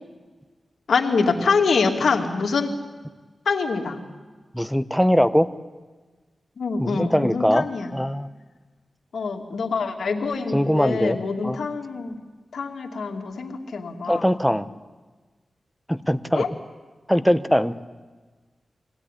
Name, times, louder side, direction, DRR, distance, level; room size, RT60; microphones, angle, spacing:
voice 1, 0.9-2.7 3.5-4.0 6.6-7.9 9.1-12.2 12.5-14.3 16.3-16.5, left 4 dB, 85° left, 3 dB, 2.6 m, -25 dB
voice 2, 4.5-5.5 6.8-7.7 7.9-8.3 10.5-11.2 11.4-11.6 14.1-14.7 15.9-16.5 17.1-17.7, equal, ahead, 11 dB, 1.0 m, -21 dB
24.5 x 17.0 x 10.0 m, 1.3 s
wide cardioid pair, 75°, 0 cm